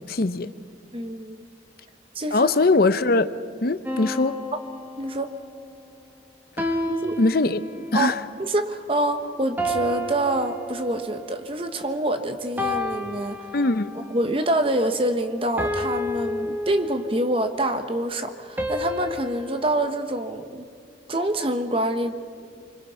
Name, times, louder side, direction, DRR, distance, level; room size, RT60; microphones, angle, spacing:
voice 1, 0.1-0.5 2.3-3.3 3.6-4.4 7.2-7.6 7.9-8.2 13.5-13.9, left 3 dB, 50° left, 0.7 m, -21 dB
voice 2, 0.9-1.5 2.1-2.5 4.5-4.6 5.0-5.3 6.9-7.2 7.9-8.1 8.4-13.6 13.9-20.7 21.1-22.1, right 1 dB, 30° right, 1.1 m, -26 dB
sound 1, 3.8-5.5 6.6-8.1 9.6-11.2 12.6-14.1 15.6-17.3 18.6-19.6, left 1 dB, 10° right, 1.5 m, -30 dB
25.5 x 25.0 x 5.7 m
head